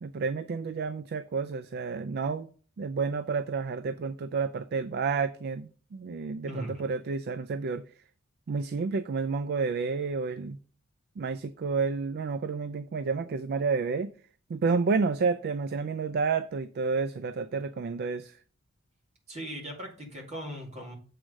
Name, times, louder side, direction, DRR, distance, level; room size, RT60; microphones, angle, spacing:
voice 1, 0.0-2.5 2.8-7.8 8.5-10.6 11.2-14.1 14.5-18.4, right 4 dB, 50° right, 0.4 m, -30 dB
voice 2, 6.5-6.8 19.3-20.9, equal, 35° right, 2.5 m, -39 dB
7.5 x 4.8 x 5.1 m
head